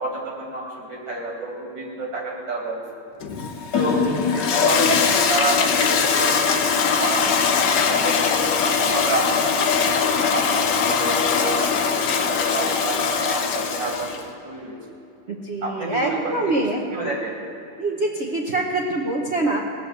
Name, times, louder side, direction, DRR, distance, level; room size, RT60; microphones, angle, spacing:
voice 1, 0.0-2.8 3.7-4.1 4.3-7.6 7.9-9.5 9.8-9.9 10.3-14.8 15.6-16.5 16.9-17.3, right 2 dB, 80° right, -1 dB, 3.2 m, -29 dB
Toilet flush, 3.2-14.3, left 6 dB, 70° left, 1.5 m, -21 dB
voice 2, 15.3-16.9 17.8-19.6, right 2 dB, 40° right, -2 dB, 1.1 m, -24 dB
18.0 x 7.0 x 7.9 m, 2.6 s
omnidirectional pair, 2.0 m